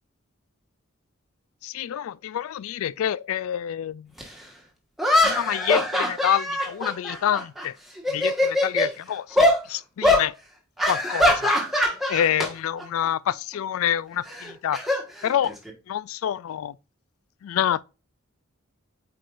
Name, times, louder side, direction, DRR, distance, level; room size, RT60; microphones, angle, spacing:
voice 1, 1.6-4.1 5.2-7.7 8.1-10.3 10.9-14.8 15.2-15.5 15.9-16.7 17.4-17.8, left 10 dB, 80° left, 0.3 m, -27 dB
sound 1, 4.2-4.3 5.0-7.6 8.0-8.9 9.4-9.6 10.0-10.3 10.8-12.5 12.8-13.1 14.3-15.7, left 1 dB, ahead, 1.3 m, -22 dB
8.4 x 4.6 x 2.5 m
head